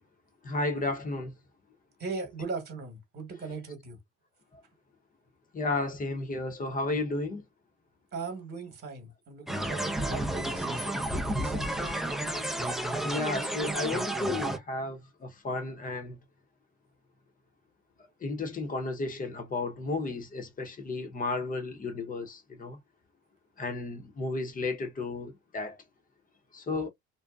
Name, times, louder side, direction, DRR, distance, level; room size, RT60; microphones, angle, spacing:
voice 1, 0.4-1.3 4.5-4.6 5.5-7.4 13.0-16.2 18.2-22.8 23.6-25.8 26.5-26.9, left 3 dB, 25° left, 0.8 m, -33 dB
voice 2, 2.0-4.0 8.1-11.1 11.4-12.0, right 4 dB, 30° right, 1.2 m, -39 dB
sound 1, 9.5-14.6, right 1 dB, ahead, 0.4 m, -31 dB
2.6 x 2.1 x 2.3 m
supercardioid pair, 100°, 33 cm